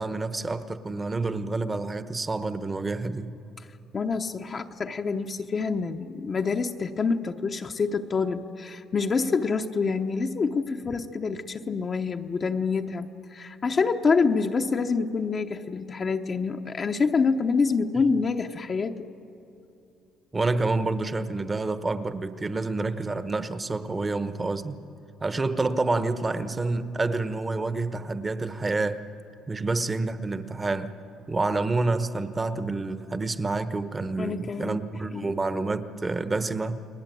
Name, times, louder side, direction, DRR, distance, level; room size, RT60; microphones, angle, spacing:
voice 1, 0.0-3.3 18.0-18.1 20.3-24.8 25.2-29.0 29.5-31.0 31.3-36.8, right 3 dB, 20° right, 11 dB, 1.1 m, -28 dB
voice 2, 3.9-19.0 34.2-34.8 35.1-35.4, left 4 dB, 30° left, 4 dB, 0.9 m, -27 dB
30.0 x 21.5 x 9.3 m, 2.8 s
cardioid pair, 140°, 0 cm